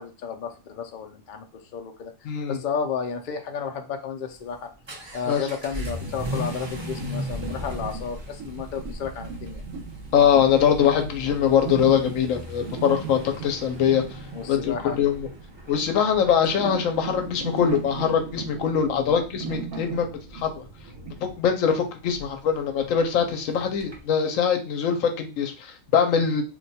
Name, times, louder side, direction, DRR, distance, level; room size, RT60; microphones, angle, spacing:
voice 1, 0.0-4.7 5.1-9.6 14.3-15.0 18.9-19.2, left 6 dB, 55° left, 4 dB, 0.5 m, -32 dB
voice 2, 2.2-2.6 5.3-5.5 10.1-14.2 14.5-15.3 15.7-20.1 20.3-20.6 21.2-26.4, left 8 dB, 85° left, 5 dB, 1.0 m, -22 dB
Vehicle / Accelerating revving vroom, 4.3-24.1, equal, 30° right, 0.5 m, -39 dB
sound 1, 5.8-21.4, right 4 dB, 80° right, 1.1 m, -38 dB
2.6 x 2.2 x 4.0 m, 0.31 s
omnidirectional pair, 1.3 m